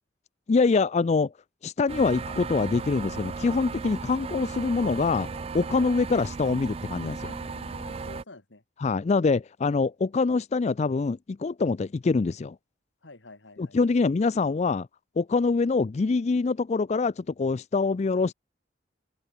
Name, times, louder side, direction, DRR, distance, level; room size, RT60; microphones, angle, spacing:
voice 1, 0.5-1.3 1.6-7.3 8.8-12.6 13.6-14.9 15.2-18.3, left 4 dB, 35° left, 0.4 m, -25 dB
sound 1, 1.9-8.2, right 4 dB, 30° right, 0.4 m, -36 dB
voice 2, 7.2-8.6 13.0-14.0, left 2 dB, 85° left, 2.6 m, -49 dB
open air
head